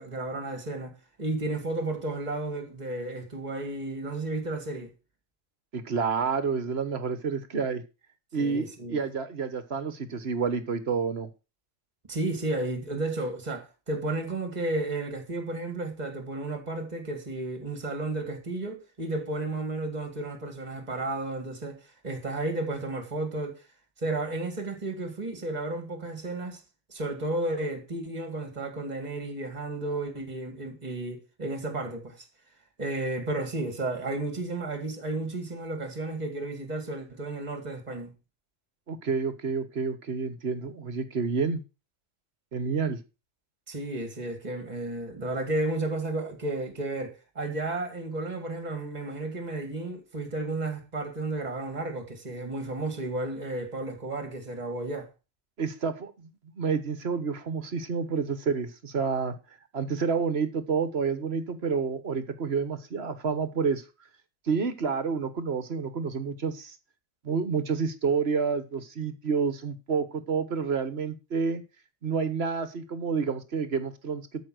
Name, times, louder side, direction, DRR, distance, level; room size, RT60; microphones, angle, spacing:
voice 1, 0.0-4.9 8.4-9.0 12.1-23.6 24.0-26.6 26.9-32.3 32.8-38.2 43.7-55.1, right 2 dB, 30° right, 2.2 m, -33 dB
voice 2, 5.7-7.8 8.3-11.3 38.9-41.6 42.5-43.0 55.6-59.3 59.7-63.8 64.5-66.7 67.2-71.6 72.0-74.3, right 5 dB, 55° right, 1.4 m, -29 dB
13.0 x 5.3 x 6.4 m
omnidirectional pair, 1.3 m